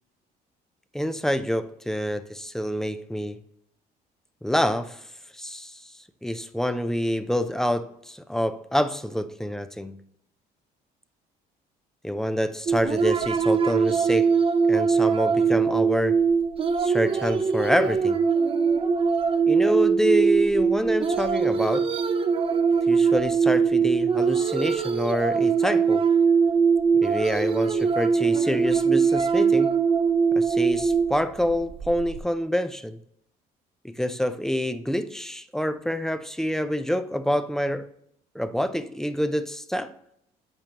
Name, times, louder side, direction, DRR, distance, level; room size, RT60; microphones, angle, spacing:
voice 1, 0.9-3.4 4.4-5.0 5.3-5.8 6.2-10.0 12.0-14.4 14.7-16.2 16.8-18.2 19.5-21.9 22.9-26.1 26.9-29.7 30.3-33.0 33.8-37.9 38.3-39.9, equal, 5° left, 0.5 m, -27 dB
sound 1, 12.7-32.2, right 5 dB, 35° right, 0.7 m, -22 dB
8.9 x 5.1 x 2.9 m
cardioid pair, 110°, 17 cm